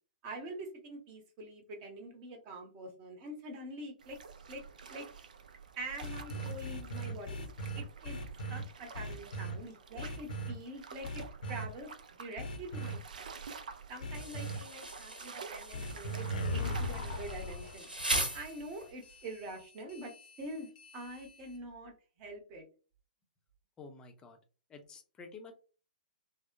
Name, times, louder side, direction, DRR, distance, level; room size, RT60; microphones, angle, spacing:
voice 1, 0.2-4.2 4.5-4.6 4.9-5.0 5.8-7.4 7.7-8.2 8.5-11.9 12.2-13.2 13.9-17.9 18.3-20.1 20.4-20.7 20.9-21.9 22.2-22.6, right 1 dB, 30° right, 3 dB, 0.9 m, -45 dB
sound 1, 4.0-18.3, right 5 dB, 60° right, 0.4 m, -50 dB
sound 2, 6.0-8.6 8.9-9.5 10.0-10.5 11.0-11.7 12.4-12.9 14.0-14.6 15.7-21.6, equal, 60° left, 0.7 m, -39 dB
Insect, 14.1-19.1, right 1 dB, 85° right, 1.1 m, -39 dB
voice 2, 23.8-24.4 24.7-25.5, left 4 dB, 15° left, 4 dB, 0.6 m, -50 dB
3.5 x 2.1 x 2.5 m, 0.36 s
figure-of-eight pair, 115°, 5 cm